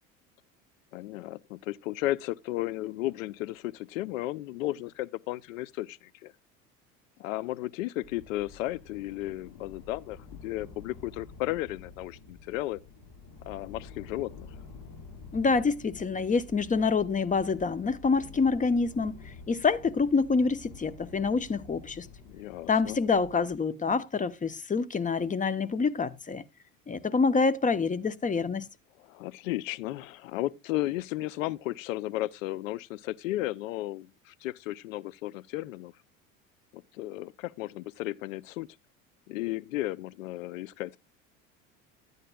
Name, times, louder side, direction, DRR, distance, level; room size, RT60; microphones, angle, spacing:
voice 1, 0.9-6.3 7.2-12.8 13.4-14.5 22.2-23.0 29.0-35.9 36.7-38.7 39.3-41.0, left 16 dB, 70° left, 0.7 m, -34 dB
sound 1, 8.0-23.6, left 4 dB, 45° left, 4.1 m, -49 dB
voice 2, 15.3-22.1 22.7-26.4 26.9-28.7, left 4 dB, 20° left, 0.9 m, -27 dB
12.0 x 9.2 x 2.2 m
hypercardioid pair, 70°, 41 cm